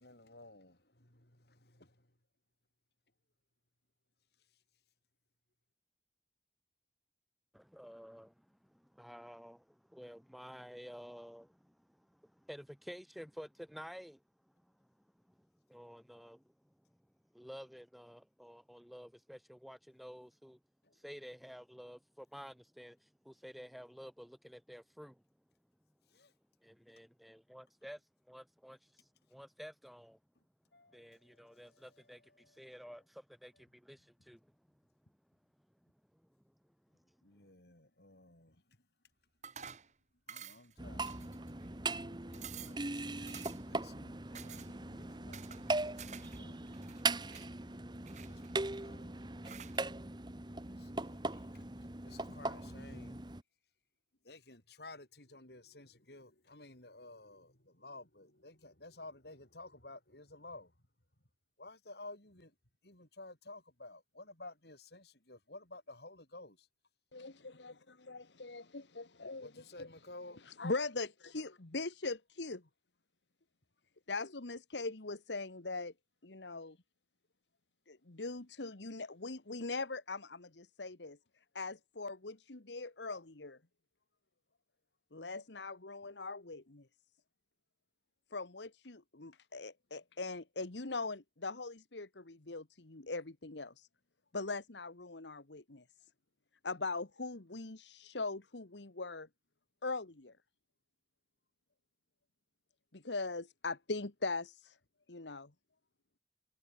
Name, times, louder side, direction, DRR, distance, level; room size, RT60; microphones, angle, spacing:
voice 1, 0.0-2.1 20.8-21.0 26.1-26.3 30.7-32.6 37.2-38.6 40.3-41.5 41.9-47.9 48.2-49.3 50.7-51.7 52.0-53.2 54.2-60.7 61.6-62.5 62.8-66.7 69.4-70.4, left 2 dB, 70° left, 5.6 m, -54 dB
voice 2, 7.5-14.2 14.8-14.9 15.3-16.4 17.3-20.6 20.9-25.2 26.6-28.0 28.3-30.2 30.9-34.5 36.1-36.2, equal, ahead, 1.1 m, -52 dB
sound 1, 39.4-39.9 40.3-40.7 41.1-41.7 42.0-42.1 42.3-42.8 43.3-43.7 44.3-44.7 45.3-46.4 46.7-47.5 48.1-48.8 49.4-49.8, right 8 dB, 40° right, 1.5 m, -50 dB
sound 2, 40.8-53.4, right 3 dB, 25° right, 1.3 m, -40 dB
voice 3, 67.1-69.9 70.5-72.6 74.1-75.9 76.2-76.8 77.9-81.2 81.6-83.6 85.1-86.9 88.3-93.9 94.3-95.8 96.6-99.3 99.8-100.3 102.9-104.8 105.1-105.5, left 3 dB, 90° left, 1.6 m, -41 dB
head